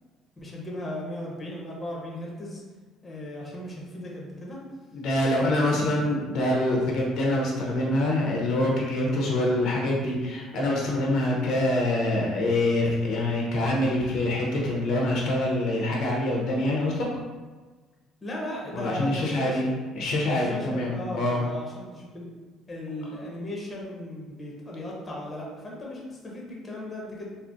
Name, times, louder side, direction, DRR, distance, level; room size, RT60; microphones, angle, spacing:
voice 1, 0.4-2.6 3.0-4.6 5.4-5.9 18.2-19.7 20.2-22.3 22.7-27.3, left 1 dB, 25° left, -3 dB, 0.7 m, -36 dB
voice 2, 4.9-17.1 18.7-19.7 20.0-21.4, left 1 dB, 65° left, -2 dB, 0.6 m, -25 dB
3.7 x 2.0 x 2.5 m, 1.3 s
cardioid pair, 115°, 0 cm